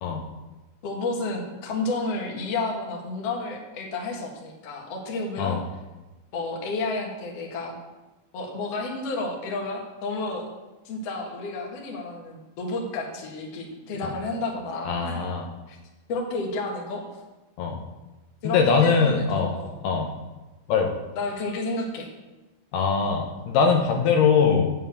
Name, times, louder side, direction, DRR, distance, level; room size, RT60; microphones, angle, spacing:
voice 1, 0.8-5.6 6.3-7.8 8.3-10.4 10.8-15.2 15.7-15.8 16.1-17.0 18.4-19.8 21.2-22.1, left 3 dB, 50° left, 0 dB, 2.0 m, -31 dB
voice 2, 14.9-15.5 17.6-17.8 18.4-19.6 19.8-20.1 20.7-20.9 22.7-24.7, left 5 dB, 75° left, 2 dB, 2.7 m, -22 dB
7.6 x 7.4 x 8.2 m, 1.1 s
omnidirectional pair, 5.0 m